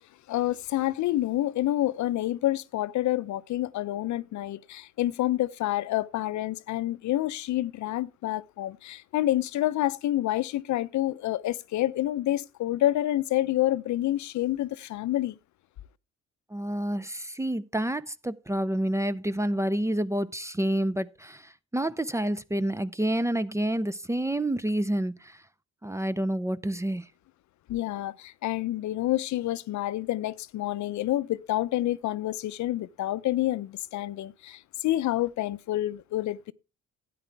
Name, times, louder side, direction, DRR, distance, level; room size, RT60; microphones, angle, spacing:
voice 1, 0.3-15.4 27.7-36.5, left 14 dB, 70° left, 0.6 m, -28 dB
voice 2, 16.5-25.4 25.8-27.1, right 1 dB, 10° right, 0.5 m, -28 dB
12.5 x 9.4 x 3.3 m
cardioid pair, 90°, 30 cm